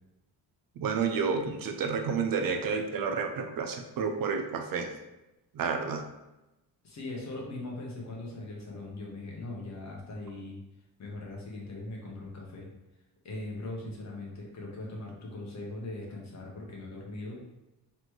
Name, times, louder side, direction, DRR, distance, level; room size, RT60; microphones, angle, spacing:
voice 1, 0.8-4.9 5.5-6.0, right 5 dB, 55° right, 5 dB, 0.5 m, -30 dB
voice 2, 6.8-10.6 11.0-12.7 13.2-17.4, left 2 dB, 40° left, -2 dB, 1.2 m, -40 dB
4.1 x 3.2 x 3.1 m, 0.99 s
cardioid pair, 140°, 41 cm